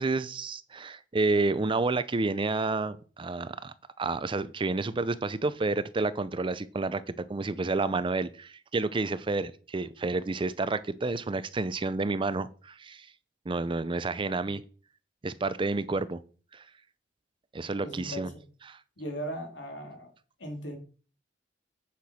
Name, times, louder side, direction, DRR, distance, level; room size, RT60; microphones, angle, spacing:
voice 1, 0.0-13.1 13.5-14.6 15.2-16.2 16.5-16.6 17.5-18.3 18.7-18.8, right 3 dB, 25° right, 16 dB, 0.5 m, -30 dB
voice 2, 17.8-18.4 19.0-20.1 20.4-20.8, equal, 75° left, 3 dB, 2.9 m, -38 dB
8.6 x 5.9 x 6.1 m, 0.40 s
head